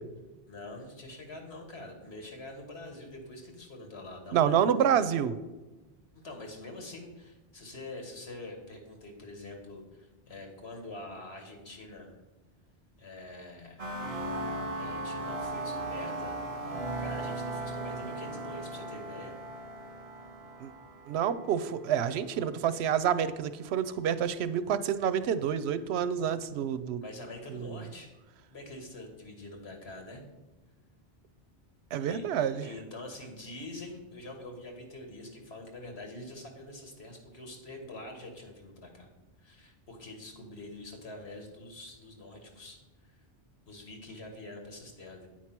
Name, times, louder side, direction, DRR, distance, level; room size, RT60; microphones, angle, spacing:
voice 1, 0.5-4.7 6.1-12.2 13.0-13.9 14.7-16.4 17.0-19.4 27.0-28.1 28.5-30.2 32.0-39.1 39.4-42.8 43.0-43.2 43.7-45.3, left 2 dB, 80° left, 3 dB, 1.9 m, -45 dB
voice 2, 4.3-5.4 20.6-20.7 21.1-27.0 27.5-27.8 31.9-32.7, right 8 dB, 85° right, 13 dB, 0.8 m, -28 dB
sound 1, 13.8-22.4, right 2 dB, 60° right, 1.4 m, -37 dB
8.7 x 4.7 x 5.8 m, 1.1 s
omnidirectional pair, 1.1 m